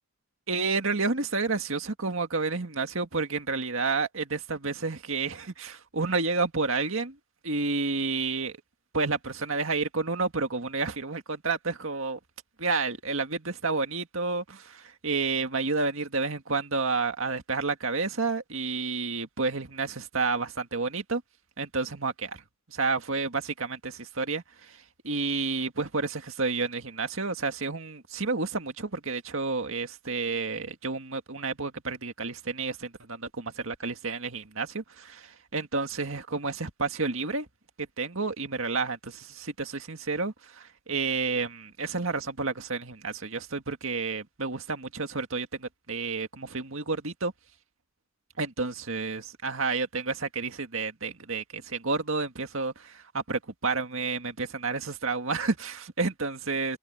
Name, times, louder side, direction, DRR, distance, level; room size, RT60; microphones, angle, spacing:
voice 1, 0.5-7.2 7.4-8.5 8.9-12.2 12.6-21.2 21.6-22.4 22.7-37.5 37.8-47.3 48.4-56.8, right 4 dB, 65° right, 2.0 m, -30 dB
head